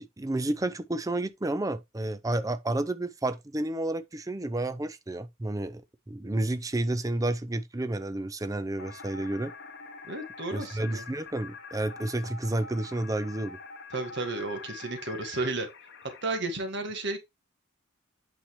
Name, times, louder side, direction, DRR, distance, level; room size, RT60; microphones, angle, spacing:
voice 1, 0.0-5.8 6.1-9.5 10.5-13.6, right 1 dB, 15° right, 0.5 m, -31 dB
sound 1, 8.8-16.4, left 4 dB, 50° left, 1.0 m, -45 dB
voice 2, 10.1-11.0 13.9-15.7 16.2-17.2, right 2 dB, 55° right, 1.7 m, -33 dB
8.7 x 5.7 x 3.1 m
head